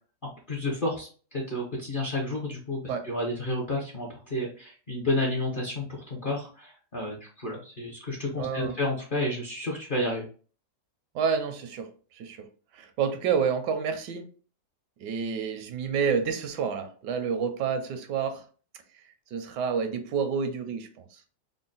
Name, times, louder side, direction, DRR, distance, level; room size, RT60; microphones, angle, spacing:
voice 1, 0.5-10.3, left 1 dB, 50° left, 0.6 m, -31 dB
voice 2, 8.4-8.7 11.1-12.4 12.7-14.2 15.0-18.4 19.3-21.1, right 6 dB, 80° right, 1.2 m, -29 dB
3.8 x 2.1 x 3.8 m
omnidirectional pair, 1.9 m